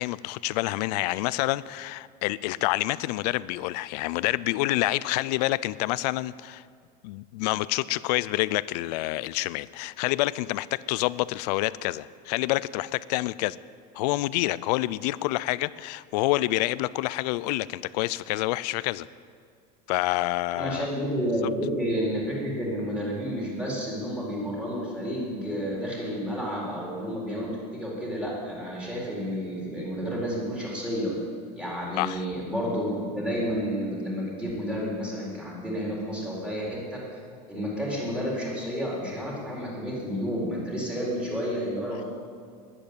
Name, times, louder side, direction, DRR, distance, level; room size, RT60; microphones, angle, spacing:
voice 1, 0.0-6.6 7.0-13.6 13.9-19.1 19.9-20.9 32.0-32.2, left 18 dB, 75° left, 19 dB, 0.5 m, -27 dB
voice 2, 20.5-31.1 31.5-37.0 37.5-42.0, equal, 5° right, -5 dB, 4.2 m, -30 dB
12.0 x 11.0 x 8.8 m, 2.2 s
supercardioid pair, 155°, 21 cm